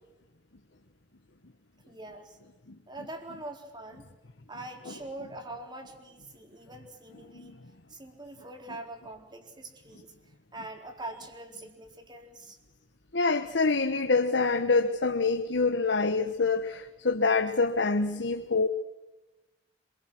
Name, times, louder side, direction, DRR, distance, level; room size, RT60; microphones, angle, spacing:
voice 1, 1.8-2.4 2.9-4.1 4.5-7.6 7.9-10.1 10.5-12.6, right 2 dB, 25° right, 3.9 m, -43 dB
voice 2, 2.7-3.1 4.5-4.9 5.2-5.3 7.3-7.5 8.7-8.8 13.1-18.7, left 4 dB, 85° left, 1.3 m, -26 dB
26.5 x 23.0 x 6.3 m
head